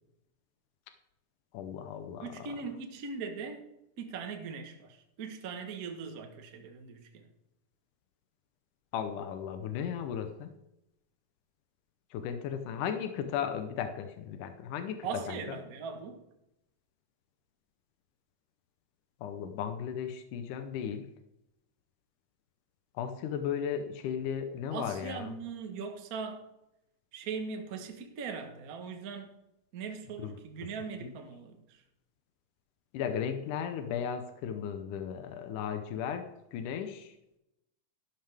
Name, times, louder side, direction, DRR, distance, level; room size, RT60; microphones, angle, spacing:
voice 1, 1.5-2.3 8.9-10.5 12.1-15.4 19.2-21.0 23.0-25.3 30.2-30.3 31.0-31.1 32.9-37.1, left 8 dB, 80° left, 2.4 m, -35 dB
voice 2, 2.2-3.6 4.0-7.2 15.0-16.2 24.7-26.4 27.1-29.3 29.7-31.8, right 5 dB, 55° right, 1.0 m, -40 dB
13.0 x 11.5 x 3.5 m
omnidirectional pair, 3.7 m